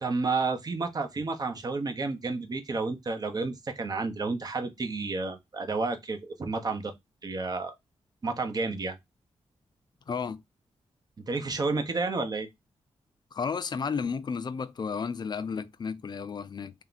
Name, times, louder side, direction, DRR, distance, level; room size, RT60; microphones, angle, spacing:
voice 1, 0.0-6.9 7.2-7.7 8.2-9.0 11.3-12.5, right 3 dB, 35° right, 0.8 m, -31 dB
voice 2, 10.1-10.4 13.3-16.7, left 5 dB, 40° left, 0.4 m, -32 dB
3.4 x 2.8 x 3.9 m
wide cardioid pair, 125°, 11 cm